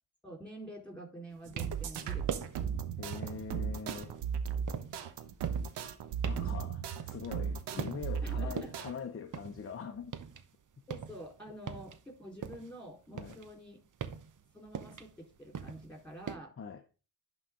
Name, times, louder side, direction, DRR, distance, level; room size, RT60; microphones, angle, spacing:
voice 1, 0.2-2.6 6.3-6.7 7.7-7.9 8.2-8.7 10.9-13.8 14.5-16.5, right 1 dB, 5° left, 4.1 m, -48 dB
sound 1, 1.3-1.9 2.3-2.7 3.1-3.5 3.9-7.5 7.8-8.3 8.6-10.5 10.7-12.8 13.1-16.4, right 7 dB, 50° right, 0.9 m, -42 dB
sound 2, 1.5-8.9, right 7 dB, 80° right, 0.9 m, -36 dB
voice 2, 3.0-4.2 6.3-10.1 13.1-13.4 16.6-16.8, left 6 dB, 35° left, 0.8 m, -43 dB
11.0 x 4.0 x 3.8 m
cardioid pair, 70°, 41 cm